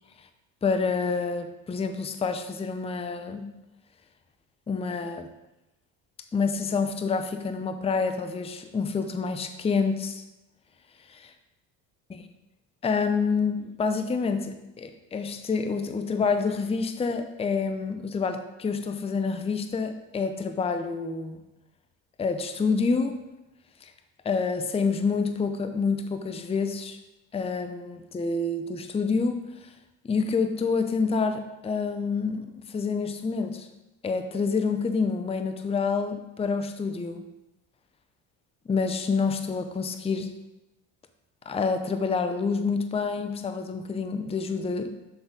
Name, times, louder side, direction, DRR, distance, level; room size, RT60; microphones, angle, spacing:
voice 1, 0.6-3.5 4.7-5.3 6.3-10.2 11.1-11.3 12.8-21.4 22.2-23.2 23.8-23.9 24.2-27.0 27.3-29.4 30.0-33.7 34.0-37.3 38.7-40.3 41.5-44.9, left 4 dB, 15° left, 8 dB, 0.6 m, -28 dB
11.5 x 3.9 x 3.7 m, 0.98 s
supercardioid pair, 85°, 37 cm